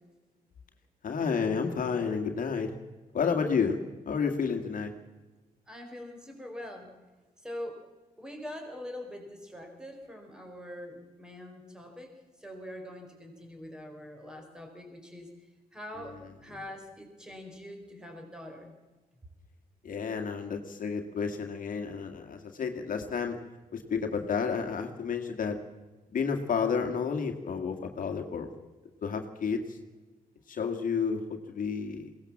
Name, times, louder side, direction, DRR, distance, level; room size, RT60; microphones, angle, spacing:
voice 1, 1.0-2.8 3.1-3.8 4.1-4.9 19.8-23.4 23.7-25.6 26.1-28.5 29.0-29.8 30.5-32.1, left 6 dB, 60° left, 4 dB, 2.0 m, -31 dB
voice 2, 5.7-6.9 7.4-7.8 8.2-12.1 12.4-15.3 15.7-18.7, left 1 dB, 5° right, 3 dB, 4.6 m, -43 dB
22.0 x 18.0 x 7.4 m, 1.2 s
cardioid pair, 110°, 16 cm